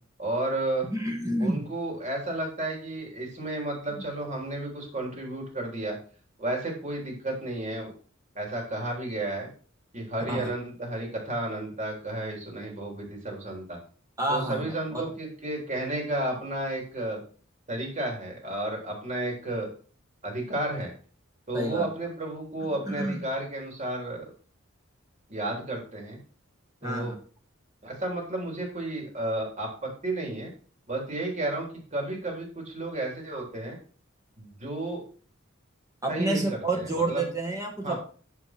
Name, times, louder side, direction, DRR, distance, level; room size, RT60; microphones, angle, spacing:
voice 1, 0.2-0.9 1.4-6.0 6.4-7.9 8.3-9.5 9.9-13.8 14.3-17.2 17.7-19.7 20.2-20.9 21.5-24.3 25.3-26.2 26.8-27.1 27.8-30.5 30.9-33.8 34.4-35.0 36.1-37.3 37.8-38.0, right 1 dB, 35° right, 0 dB, 3.4 m, -32 dB
voice 2, 0.9-1.6 10.3-10.5 14.2-14.6 14.9-15.0 21.5-21.9 22.9-23.2 26.8-27.1 36.0-38.0, right 2 dB, 15° right, 2 dB, 1.9 m, -28 dB
10.0 x 6.1 x 4.5 m, 0.41 s
head